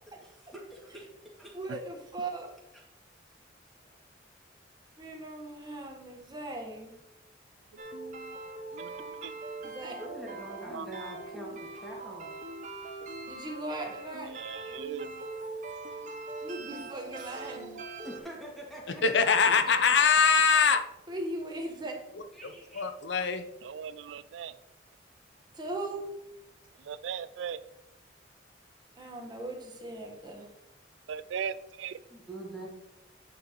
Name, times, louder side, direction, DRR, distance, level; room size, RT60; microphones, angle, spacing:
voice 1, 0.2-1.0 1.3-1.5 2.7-2.8 10.0-12.3 18.0-19.0 22.3-22.9 32.1-32.7, right 1 dB, ahead, -4 dB, 2.2 m, -44 dB
voice 2, 1.5-2.5 5.0-7.0 9.6-10.0 13.3-14.3 16.4-17.7 19.5-19.6 21.1-22.0 25.5-26.0 29.0-30.5, right 2 dB, 25° right, 1 dB, 1.3 m, -38 dB
sound 1, 7.8-18.2, right 2 dB, 45° right, 0.8 m, -42 dB
voice 3, 8.7-9.3 10.7-10.9 14.3-15.1 17.8-17.9 23.6-24.6 26.8-27.6 31.1-32.0, right 7 dB, 80° right, 15 dB, 0.3 m, -38 dB
voice 4, 19.0-20.8 22.7-23.4, left 5 dB, 70° left, 8 dB, 0.7 m, -23 dB
9.0 x 6.3 x 3.1 m, 0.87 s
head